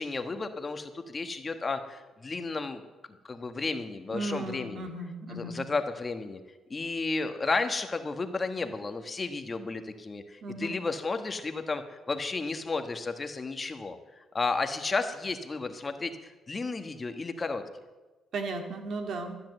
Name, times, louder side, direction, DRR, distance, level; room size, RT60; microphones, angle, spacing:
voice 1, 0.0-2.8 3.2-4.9 5.3-6.4 6.7-17.6, left 3 dB, 30° left, 7 dB, 1.3 m, -33 dB
voice 2, 4.1-5.6 10.4-10.8 18.3-19.4, right 2 dB, 65° right, 5 dB, 2.2 m, -35 dB
13.5 x 10.5 x 7.8 m, 1.2 s
cardioid pair, 90°, 0 cm